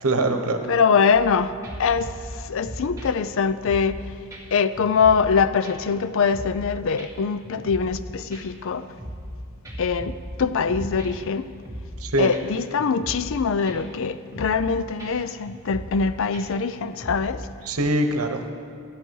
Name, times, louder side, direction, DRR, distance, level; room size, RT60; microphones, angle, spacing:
voice 1, 0.0-0.6 12.0-12.3 17.6-18.5, right 2 dB, 80° right, 1.1 m, -23 dB
voice 2, 0.7-4.0 4.5-8.9 9.8-11.5 12.2-17.5, left 5 dB, 60° left, 0.4 m, -23 dB
sound 1, 1.1-1.3 1.6-4.0 4.3-4.4 4.7-5.3 5.6-6.7 7.0-7.1 7.4-8.0 8.3-9.3 9.6-11.3 11.6-12.0 12.3-12.4 12.8-13.4 13.7-14.0 14.3-14.7 15.0-15.1 15.4-16.0 16.3-17.4, equal, 15° right, 2.1 m, -37 dB
13.5 x 11.0 x 4.6 m
head